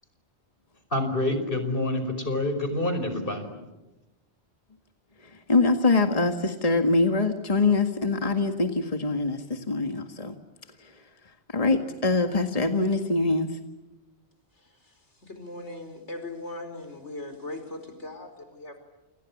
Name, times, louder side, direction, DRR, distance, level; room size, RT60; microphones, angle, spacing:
voice 1, 0.9-3.5, left 1 dB, 50° left, 8 dB, 5.4 m, -27 dB
voice 2, 5.2-10.4 10.8-10.9 11.5-13.5, left 3 dB, 30° left, 5 dB, 1.9 m, -24 dB
voice 3, 15.3-18.8, left 2 dB, 85° left, 7 dB, 5.1 m, -39 dB
29.0 x 28.0 x 7.3 m, 1.0 s
omnidirectional pair, 1.2 m